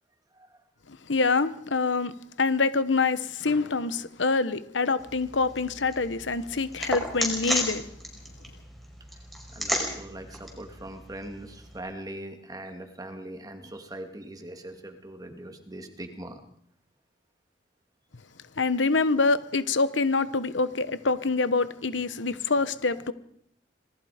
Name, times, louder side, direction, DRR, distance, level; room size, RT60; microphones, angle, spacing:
voice 1, 0.9-2.1 2.4-7.9 18.6-23.1, left 4 dB, 80° left, 1.1 m, -25 dB
sound 1, 5.0-11.8, equal, ahead, 5.3 m, -34 dB
voice 2, 9.5-16.4, right 1 dB, 20° right, 2.4 m, -41 dB
26.5 x 20.0 x 5.1 m
head